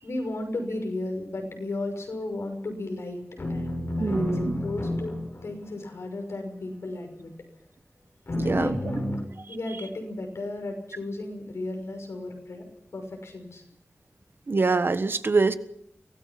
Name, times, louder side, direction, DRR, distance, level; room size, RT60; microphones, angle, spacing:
voice 1, 0.0-3.2 3.5-5.2 5.4-7.3 8.4-9.1 9.5-12.7 12.9-13.6, left 2 dB, 90° left, 4 dB, 6.2 m, -34 dB
sound 1, 3.4-5.7 8.3-9.2, left 1 dB, 55° left, 7.5 m, -30 dB
voice 2, 4.0-4.6 8.3-8.8 14.5-15.5, right 3 dB, 55° right, 11 dB, 1.5 m, -24 dB
24.5 x 18.5 x 6.0 m, 0.75 s
wide cardioid pair, 95°, 5 cm